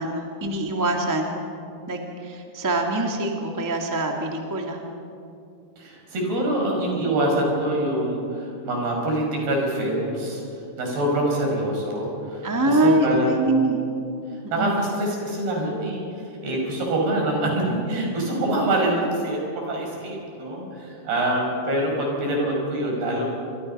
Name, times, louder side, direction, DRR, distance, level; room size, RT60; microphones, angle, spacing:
voice 1, 0.0-1.3 1.9-4.8 12.4-13.8 14.5-14.8, right 1 dB, 15° right, 1 dB, 0.6 m, -23 dB
voice 2, 5.8-10.4 10.8-13.5 14.5-23.3, right 1 dB, 60° right, 0 dB, 7.3 m, -25 dB
27.5 x 25.0 x 5.6 m, 2.6 s
omnidirectional pair, 5.0 m